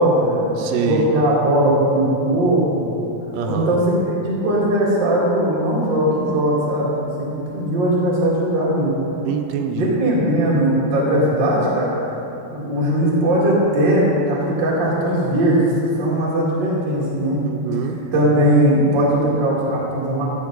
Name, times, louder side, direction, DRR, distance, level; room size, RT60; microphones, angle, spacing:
voice 1, 0.0-2.9 3.4-9.0 9.7-12.2 12.5-17.4 18.1-20.2, right 1 dB, 50° right, -6 dB, 1.3 m, -19 dB
voice 2, 0.6-1.1 3.3-3.8 9.3-10.0 17.4-18.0, right 7 dB, 80° right, 4 dB, 3.0 m, -25 dB
14.0 x 6.7 x 3.9 m, 3.0 s
omnidirectional pair, 5.6 m